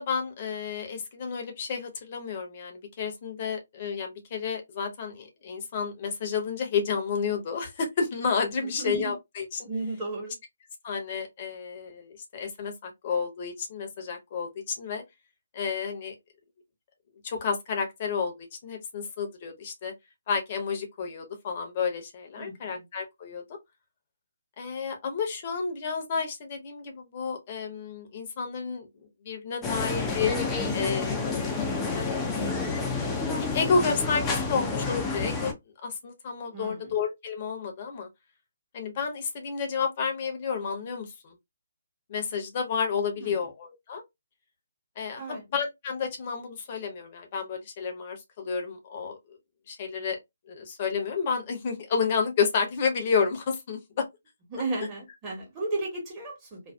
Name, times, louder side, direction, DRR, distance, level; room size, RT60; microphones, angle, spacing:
voice 1, 0.0-9.7 10.8-15.0 15.5-16.1 17.2-19.9 20.3-23.4 24.6-28.9 29.2-30.3 30.7-31.2 31.9-32.5 33.5-35.5 35.8-38.1 38.7-41.3 42.1-44.0 45.0-49.4 49.7-50.2 50.5-53.8, left 5 dB, 40° left, 0.8 m, -31 dB
voice 2, 8.6-9.1 9.7-10.3 22.4-22.5 36.5-36.9 43.2-43.5 45.2-45.4 54.5-56.7, right 2 dB, 25° right, 1.2 m, -34 dB
sound 1, 29.6-35.5, left 4 dB, 15° left, 0.5 m, -29 dB
2.6 x 2.2 x 2.2 m
figure-of-eight pair, 145°, 0 cm